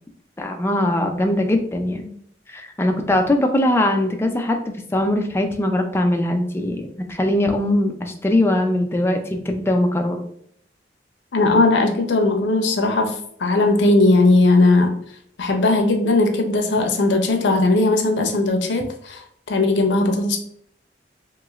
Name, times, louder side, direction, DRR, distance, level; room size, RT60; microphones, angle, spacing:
voice 1, 0.4-2.1 2.5-10.2, left 1 dB, 15° left, 4 dB, 0.3 m, -21 dB
voice 2, 11.3-14.9 15.4-20.4, left 2 dB, 85° left, 4 dB, 0.5 m, -18 dB
3.0 x 2.9 x 2.3 m, 0.67 s
head